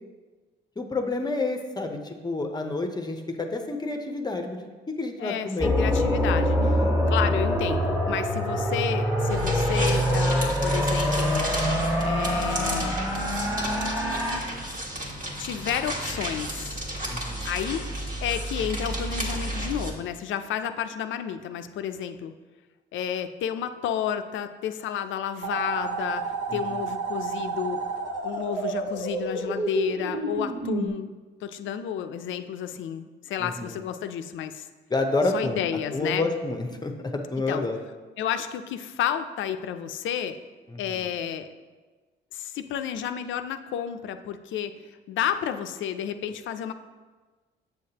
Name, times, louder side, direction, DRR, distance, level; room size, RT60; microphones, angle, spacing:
voice 1, 0.8-5.8 6.6-7.0 17.1-17.4 26.5-26.8 33.4-33.8 34.9-35.6 35.9-37.8 40.7-41.1, left 2 dB, 20° left, 5 dB, 0.7 m, -29 dB
voice 2, 5.2-6.6 7.1-11.5 12.0-13.0 15.4-16.7 17.4-17.9 18.2-22.3 22.9-27.8 28.2-31.1 31.4-34.7 35.3-36.3 37.5-37.6 38.2-40.4 40.8-41.5 42.3-46.7, left 9 dB, 75° left, 9 dB, 0.5 m, -31 dB
sound 1, 5.6-14.4, equal, 15° right, 1.4 m, -25 dB
sound 2, 9.3-19.9, right 1 dB, 45° right, 1.4 m, -32 dB
sound 3, 25.4-30.9, right 4 dB, 65° right, 1.1 m, -30 dB
7.9 x 6.4 x 2.8 m, 1.3 s
cardioid pair, 90°, 20 cm